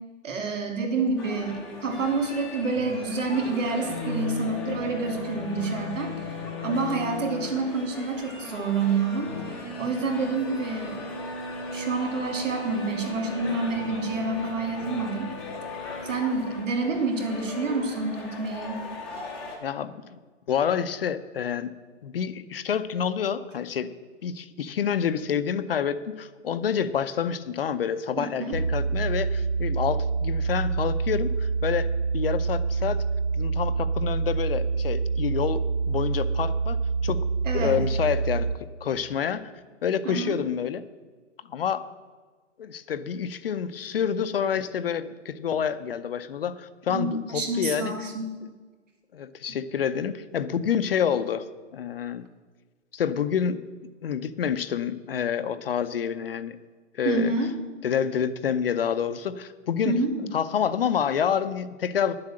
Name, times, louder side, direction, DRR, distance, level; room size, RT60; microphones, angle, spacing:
voice 1, 0.2-6.1 6.6-9.3 9.8-11.0 11.7-15.3 16.0-18.8 28.2-28.6 37.4-37.8 40.0-40.4 46.9-48.2 57.0-57.5 59.8-60.3, right 3 dB, 85° right, 3 dB, 2.8 m, -28 dB
sound 1, 1.2-19.6, left 2 dB, ahead, 0.7 m, -36 dB
voice 2, 19.6-20.0 20.5-21.7 22.0-23.9 24.2-33.0 33.3-37.3 37.5-38.5 38.8-39.5 39.8-40.8 41.5-41.8 42.6-47.9 49.1-51.5 51.7-52.2 52.9-53.6 54.0-56.6 57.0-57.3 57.8-60.0 60.3-62.2, left 8 dB, 50° left, 13 dB, 0.6 m, -28 dB
sound 2, 28.5-38.5, right 4 dB, 65° right, 1.3 m, -26 dB
10.5 x 7.7 x 7.4 m, 1.4 s
hypercardioid pair, 165°, 37 cm